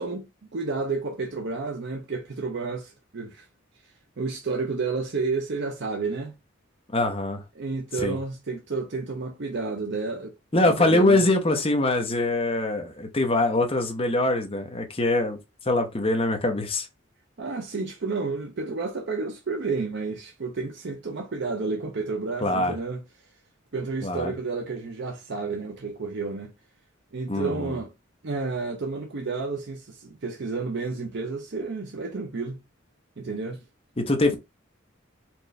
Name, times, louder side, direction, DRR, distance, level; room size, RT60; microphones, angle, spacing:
voice 1, 0.0-3.5 4.2-6.4 7.6-10.3 10.6-11.2 17.4-23.0 23.7-26.5 27.1-27.9 28.2-32.6 33.2-33.6, right 4 dB, 55° right, 0.6 m, -31 dB
voice 2, 6.9-7.4 8.0-8.2 10.5-15.4 15.6-16.9 22.4-22.7 24.0-24.3 27.3-27.8 34.0-34.3, left 2 dB, 30° left, 0.8 m, -23 dB
4.4 x 2.5 x 3.2 m
head